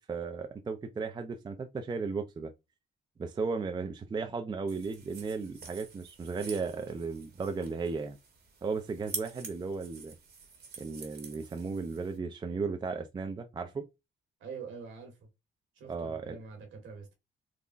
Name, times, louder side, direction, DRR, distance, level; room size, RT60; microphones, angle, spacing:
voice 1, 0.1-2.5 3.2-8.2 8.6-10.1 10.8-13.8 15.9-16.3, right 4 dB, 20° right, 0.4 m, -35 dB
sound 1, 4.7-12.2, right 5 dB, 55° right, 1.0 m, -47 dB
voice 2, 14.4-15.3 15.7-17.1, right 5 dB, 80° right, 1.3 m, -45 dB
3.7 x 2.1 x 2.4 m
cardioid pair, 90°, 20 cm